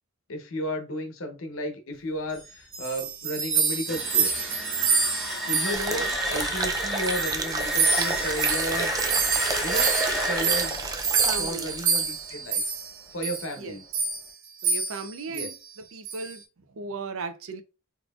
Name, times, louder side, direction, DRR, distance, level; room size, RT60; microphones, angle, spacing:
voice 1, 0.3-4.4 5.4-8.9 9.6-9.9 10.3-10.9 11.4-12.7 13.1-13.8 15.3-15.5, equal, 85° left, 1.0 m, -33 dB
sound 1, 2.5-6.7 7.0-12.9 13.2-13.5 13.9-14.3 14.6-15.1 15.3-15.5 16.1-16.3, right 5 dB, 65° right, 1.4 m, -27 dB
sound 2, 3.7-12.5, equal, ahead, 0.9 m, -32 dB
voice 2, 5.6-6.2 11.2-11.8 13.6-13.8 14.6-16.4 16.7-17.6, right 4 dB, 85° right, 0.6 m, -36 dB
sound 3, 5.7-12.0 12.3-12.4, right 3 dB, 20° right, 0.4 m, -32 dB
4.0 x 3.1 x 2.4 m
head